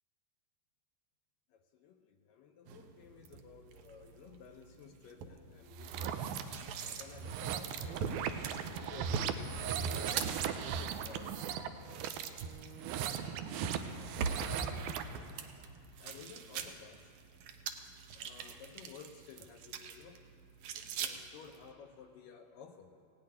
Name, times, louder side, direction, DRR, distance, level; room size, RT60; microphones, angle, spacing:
voice 1, 1.5-6.3 6.8-8.3 8.7-10.3 10.8-11.4 14.5-15.1 16.0-17.1 18.2-20.2 20.9-22.9, left 6 dB, 75° left, 3 dB, 2.2 m, -54 dB
sound 1, 2.7-21.7, right 5 dB, 70° right, 1.8 m, -44 dB
sound 2, 5.7-6.4 7.1-15.2, right 8 dB, 90° right, 2.5 m, -38 dB
17.0 x 8.8 x 9.5 m, 2.5 s
omnidirectional pair, 4.3 m